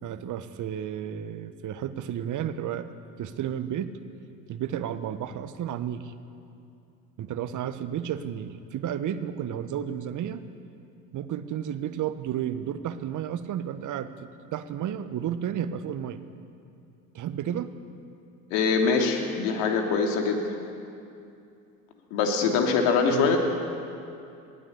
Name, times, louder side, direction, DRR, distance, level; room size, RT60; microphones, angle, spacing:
voice 1, 0.0-2.9 3.2-3.9 4.5-6.1 7.2-10.4 11.1-16.2 17.1-17.7 23.1-23.4, right 10 dB, 35° right, 12 dB, 1.3 m, -32 dB
voice 2, 18.5-20.4 22.1-23.4, left 5 dB, 60° left, 3 dB, 3.2 m, -23 dB
22.0 x 16.5 x 8.3 m, 2.6 s
figure-of-eight pair, 70°, 50 cm